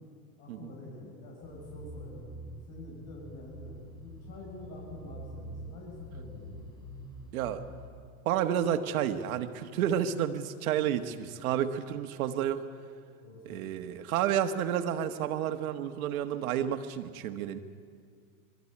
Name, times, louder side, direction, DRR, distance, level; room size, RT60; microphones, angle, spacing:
voice 1, 0.4-2.2 2.7-6.7 13.2-13.7, left 2 dB, 50° left, -3 dB, 6.6 m, -47 dB
sound 1, 1.4-7.9, right 1 dB, 10° left, 4.2 m, -46 dB
voice 2, 7.3-7.6 8.2-12.6 13.4-17.6, right 10 dB, 75° right, 8 dB, 1.6 m, -30 dB
22.5 x 13.5 x 10.0 m, 2.1 s
supercardioid pair, 120°, 43 cm